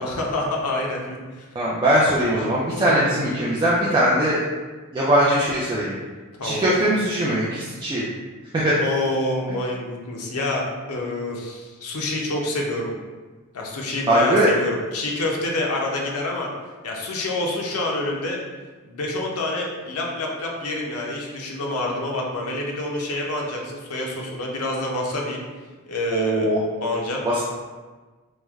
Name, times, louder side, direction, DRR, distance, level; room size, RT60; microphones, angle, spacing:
voice 1, 0.0-1.4 2.8-3.5 6.4-6.8 8.8-12.9 13.5-16.5 16.8-18.4 18.8-25.4 25.9-27.2, left 2 dB, 90° left, -1 dB, 0.6 m, -27 dB
voice 2, 1.5-4.4 4.9-5.9 6.4-8.0 8.5-8.7 14.1-14.5 26.1-26.6 27.2-27.4, right 1 dB, 20° right, -7 dB, 0.3 m, -20 dB
3.1 x 2.1 x 3.4 m, 1.3 s
head